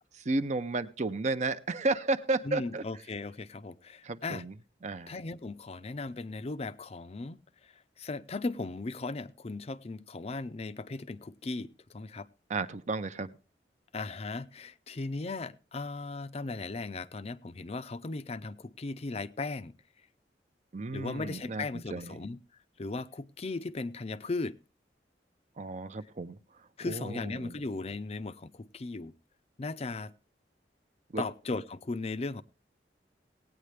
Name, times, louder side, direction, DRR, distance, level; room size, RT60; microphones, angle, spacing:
voice 1, 0.3-2.8 4.0-4.5 4.8-5.1 12.5-13.3 20.7-21.6 21.9-22.1 25.6-26.4 26.9-27.5 31.1-31.2, right 3 dB, 40° right, 0.6 m, -32 dB
voice 2, 2.4-4.4 5.1-7.4 8.0-12.3 13.9-19.8 20.9-22.4 22.8-24.6 26.8-29.1 29.6-30.1 31.2-32.4, left 3 dB, 35° left, 0.5 m, -37 dB
17.5 x 9.3 x 3.3 m
head